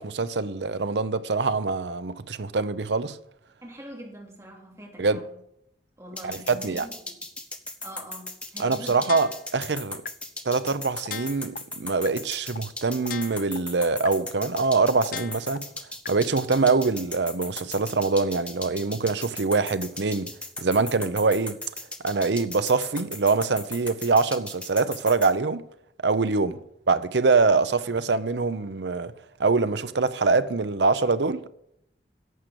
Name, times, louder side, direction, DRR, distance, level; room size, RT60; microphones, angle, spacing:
voice 1, 0.0-3.2 5.0-5.2 6.2-6.9 8.6-10.0 10.4-15.6 16.1-20.3 20.6-21.6 22.0-25.7 26.0-26.6 26.9-29.1 29.4-31.5, right 4 dB, 80° right, 0.7 m, -24 dB
voice 2, 3.6-5.4 6.0-7.2 7.8-9.1 26.4-26.6, equal, 15° right, 2.7 m, -44 dB
sound 1, 6.2-25.3, left 2 dB, 5° left, 0.8 m, -37 dB
sound 2, 9.1-9.6 10.0-10.1 10.5-10.6 11.0-11.6 12.0-12.1 12.5-12.6 13.0-13.6 14.0-14.1 14.5-14.6 15.0-15.6 16.0-16.1, left 9 dB, 50° left, 0.3 m, -36 dB
11.0 x 7.5 x 6.9 m
head